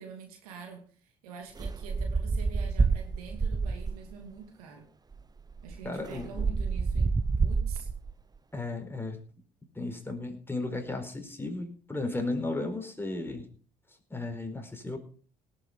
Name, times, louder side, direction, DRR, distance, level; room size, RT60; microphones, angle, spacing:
voice 1, 0.0-4.9 5.6-7.9, right 6 dB, 90° right, 4 dB, 2.7 m, -46 dB
sound 1, 1.6-4.1 5.1-5.2 5.5-8.1, right 4 dB, 20° right, 0.8 m, -28 dB
voice 2, 5.8-6.3 8.5-9.2 9.7-13.5 14.1-15.0, left 2 dB, 10° left, 4 dB, 4.6 m, -34 dB
18.0 x 8.6 x 5.1 m, 0.43 s
hypercardioid pair, 60°, 18 cm